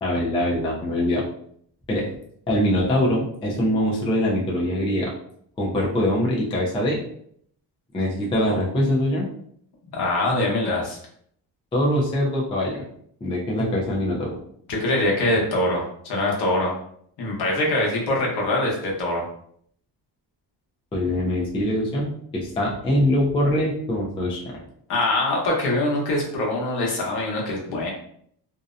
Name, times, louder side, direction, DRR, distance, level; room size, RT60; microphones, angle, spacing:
voice 1, 0.0-1.2 1.9-2.1 2.5-5.1 5.6-7.0 7.9-9.3 11.7-12.8 13.2-14.3 20.9-22.1 22.4-24.6, left 1 dB, 15° left, -4 dB, 0.3 m, -23 dB
voice 2, 9.9-11.0 13.6-13.7 14.7-16.7 17.2-19.2 24.9-27.9, left 1 dB, 60° left, -2 dB, 0.9 m, -23 dB
2.7 x 2.0 x 2.4 m, 0.66 s
cardioid pair, 155°, 44 cm